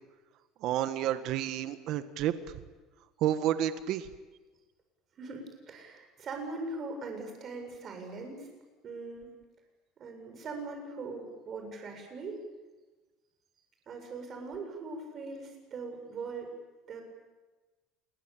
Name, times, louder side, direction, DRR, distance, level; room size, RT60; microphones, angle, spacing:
voice 1, 0.6-2.3 3.2-4.1, right 11 dB, 60° right, 11 dB, 1.6 m, -30 dB
voice 2, 5.2-8.5 8.8-9.3 10.0-12.4 13.9-16.5 16.9-17.0, right 3 dB, 35° right, 4 dB, 7.9 m, -41 dB
28.5 x 22.5 x 9.0 m, 1.2 s
cardioid pair, 140°, 0 cm